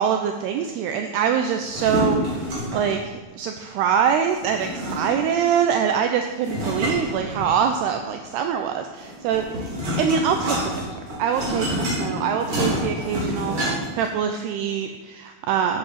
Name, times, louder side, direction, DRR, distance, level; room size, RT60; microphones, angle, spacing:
voice 1, 0.0-3.0 3.4-9.7 10.0-10.8 11.2-13.6 14.0-15.8, right 7 dB, 75° right, 5 dB, 2.6 m, -24 dB
sound 1, 1.6-3.0 4.4-5.4 6.4-7.8 9.0-14.1, equal, 35° right, 4.1 m, -27 dB
11.5 x 7.8 x 8.5 m, 1.3 s
omnidirectional pair, 5.1 m